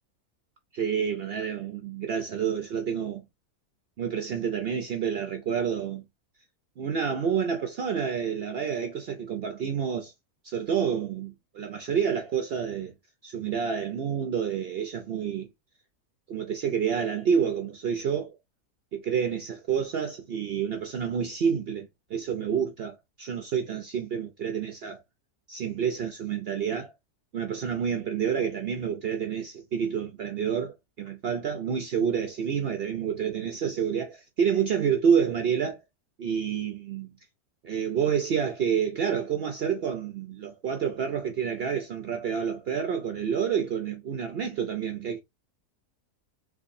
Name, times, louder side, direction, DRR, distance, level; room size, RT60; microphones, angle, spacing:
voice 1, 0.7-3.2 4.0-6.0 6.8-10.1 10.4-12.9 13.2-15.5 16.3-18.3 18.9-25.0 25.5-26.9 27.3-35.8 36.2-37.1 37.6-45.2, right 7 dB, 75° right, 0.5 m, -28 dB
3.5 x 3.1 x 2.5 m
omnidirectional pair, 1.6 m